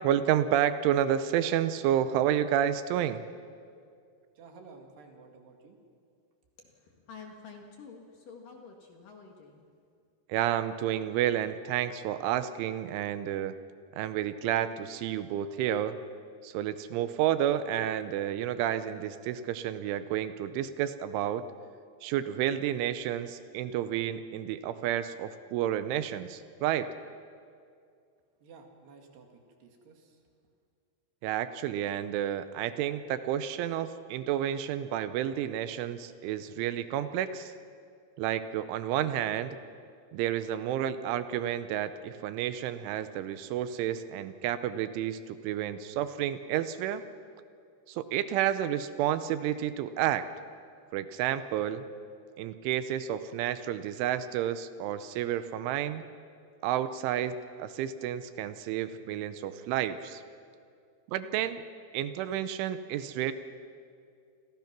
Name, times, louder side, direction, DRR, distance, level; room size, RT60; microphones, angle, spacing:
voice 1, 0.0-3.2 10.3-13.5 14.0-16.0 16.4-21.4 22.0-26.9 31.2-37.5 38.2-39.6 40.1-47.0 47.9-50.3 50.9-51.8 52.4-56.0 56.6-60.2 61.1-61.6 61.9-63.3, right 11 dB, 80° right, 12 dB, 3.2 m, -30 dB
voice 2, 4.4-5.8 28.4-30.2, right 4 dB, 60° right, 3 dB, 3.9 m, -53 dB
voice 3, 6.6-9.7, left 5 dB, 55° left, 2 dB, 2.8 m, -49 dB
29.0 x 24.5 x 6.0 m, 2.3 s
omnidirectional pair, 5.6 m